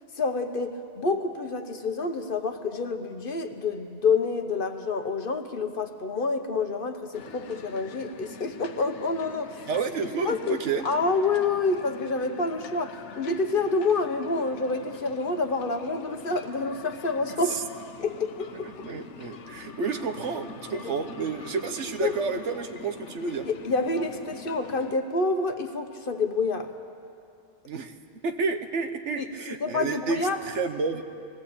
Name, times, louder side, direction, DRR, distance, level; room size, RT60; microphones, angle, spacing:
voice 1, 0.1-9.7 10.2-10.6 10.8-17.6 18.0-18.7 22.0-22.2 23.4-26.7 29.2-30.4, left 3 dB, 50° left, 7 dB, 1.2 m, -28 dB
sound 1, 7.1-25.0, left 5 dB, 85° left, 1.2 m, -45 dB
voice 2, 9.7-10.9 17.5-17.6 18.8-23.5 27.6-28.0 28.2-31.0, right 5 dB, 85° right, 8 dB, 1.3 m, -30 dB
20.5 x 17.0 x 8.6 m, 2.5 s
omnidirectional pair, 1.2 m